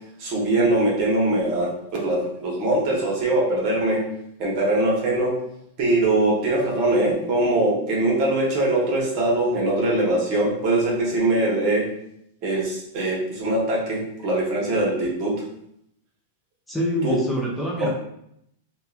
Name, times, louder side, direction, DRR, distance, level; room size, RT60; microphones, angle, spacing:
voice 1, 0.2-4.0 4.4-5.3 5.8-11.9 12.4-15.4 17.0-17.2 17.8-17.9, right 2 dB, 45° right, -3 dB, 1.0 m, -22 dB
voice 2, 16.7-17.9, equal, 5° left, -4 dB, 0.5 m, -25 dB
2.8 x 2.2 x 2.4 m, 0.76 s
hypercardioid pair, 125°, 0 cm